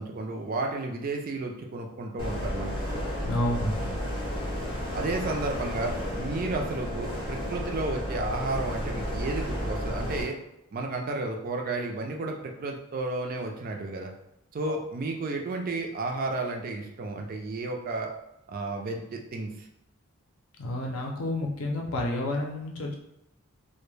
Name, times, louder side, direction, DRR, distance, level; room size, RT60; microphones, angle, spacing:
voice 1, 0.0-3.1 4.9-10.3 10.7-14.1 14.5-18.1 18.5-19.7, right 2 dB, 40° right, 2 dB, 0.3 m, -32 dB
sound 1, 2.2-10.2, equal, 25° left, 0.6 m, -32 dB
voice 2, 3.2-3.9 14.7-14.8 20.6-22.9, left 1 dB, 75° left, 0 dB, 0.5 m, -30 dB
2.2 x 2.1 x 3.1 m, 0.85 s
head